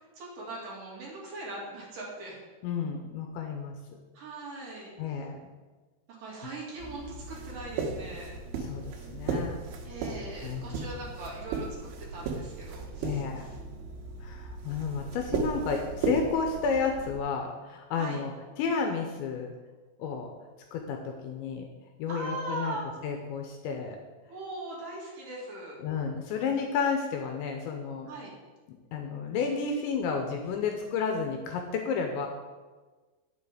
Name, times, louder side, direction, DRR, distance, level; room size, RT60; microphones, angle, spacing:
voice 1, 0.2-2.4 4.1-4.9 6.2-8.4 9.8-13.6 18.0-18.2 22.1-22.9 24.3-25.8 28.1-28.3, right 2 dB, 50° right, -5 dB, 3.3 m, -40 dB
voice 2, 2.6-3.7 5.0-5.5 6.3-6.4 8.6-9.6 10.4-10.8 13.0-13.5 14.2-19.5 20.0-20.3 20.7-21.7 22.0-22.8 23.0-24.0 25.8-28.1 28.9-32.3, left 5 dB, 80° left, 3 dB, 2.8 m, -31 dB
sound 1, 6.8-17.2, right 4 dB, 80° right, 3.5 m, -36 dB
9.4 x 7.4 x 4.9 m, 1.3 s
omnidirectional pair, 5.7 m